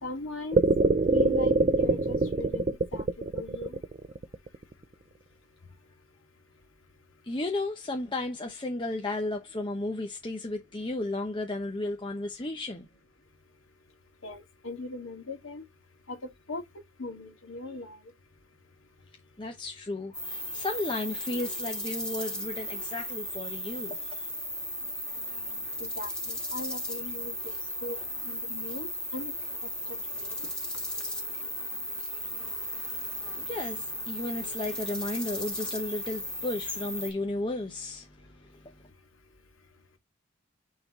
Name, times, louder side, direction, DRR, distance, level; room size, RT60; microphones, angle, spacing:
voice 1, 0.0-0.6 1.1-2.6 2.9-3.8 14.2-15.6 16.1-16.2 16.5-16.6 17.0-18.0 25.8-27.3 27.8-28.0 28.3-29.3 29.9-30.3, left 2 dB, 75° left, 2.4 m, -39 dB
sound 1, 0.5-4.7, right 3 dB, 35° right, 0.5 m, -24 dB
voice 2, 7.2-12.9 19.4-24.3 33.2-38.9, left 2 dB, 25° left, 0.9 m, -34 dB
sound 2, 20.1-37.1, left 1 dB, 5° left, 2.4 m, -36 dB
9.1 x 3.9 x 3.1 m
head